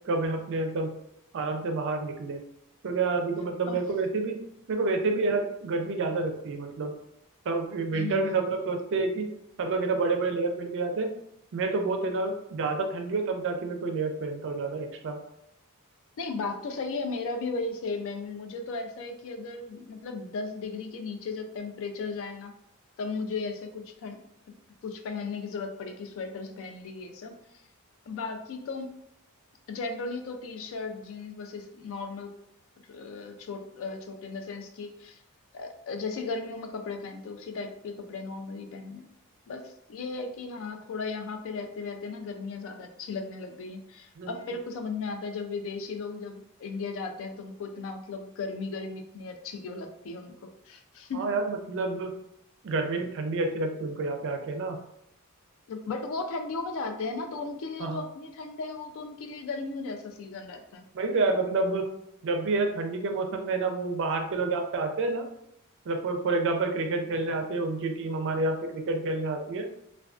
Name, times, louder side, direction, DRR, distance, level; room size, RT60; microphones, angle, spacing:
voice 1, 0.1-0.9 1.3-2.4 2.8-6.9 7.5-9.3 9.6-11.1 11.5-15.2 44.2-44.3 51.1-52.1 52.6-54.8 57.8-58.0 60.9-61.9 62.2-65.2 65.9-69.7, right 3 dB, 55° right, 5 dB, 0.4 m, -29 dB
voice 2, 7.9-8.4 16.2-22.5 23.0-24.2 24.8-27.4 28.1-28.9 29.7-32.3 32.9-35.2 35.5-39.1 39.5-51.3 55.7-60.8, left 4 dB, 60° left, 6 dB, 0.3 m, -36 dB
2.3 x 2.2 x 2.3 m, 0.79 s
head